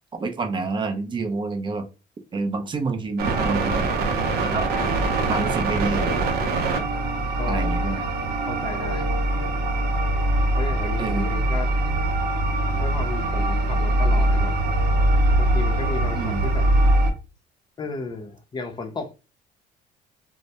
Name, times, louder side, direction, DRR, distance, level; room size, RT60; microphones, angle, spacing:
voice 1, 0.2-1.9 2.3-3.9 4.4-4.7 5.3-6.1 7.5-8.0 11.0-11.3 16.1-16.4, right 3 dB, 30° right, 0.5 m, -28 dB
sound 1, 3.2-17.1, right 1 dB, 65° right, 0.6 m, -22 dB
voice 2, 4.6-5.2 7.4-7.8 8.5-9.1 10.6-11.7 12.8-14.6 15.4-16.7 17.8-19.1, left 3 dB, 25° left, 0.5 m, -34 dB
2.2 x 2.0 x 2.7 m
cardioid pair, 110°, 17 cm